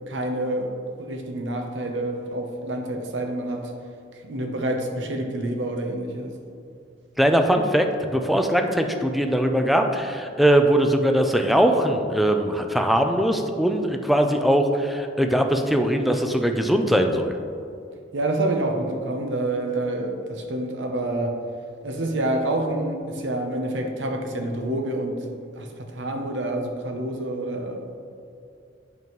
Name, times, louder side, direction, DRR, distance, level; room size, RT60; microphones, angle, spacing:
voice 1, 0.1-0.7 1.0-3.7 4.2-6.3 18.1-21.4 21.8-25.2 25.6-27.8, right 1 dB, 70° right, 3 dB, 0.8 m, -27 dB
voice 2, 7.2-17.3, right 1 dB, ahead, 4 dB, 0.4 m, -21 dB
8.1 x 5.2 x 3.1 m, 2.5 s
head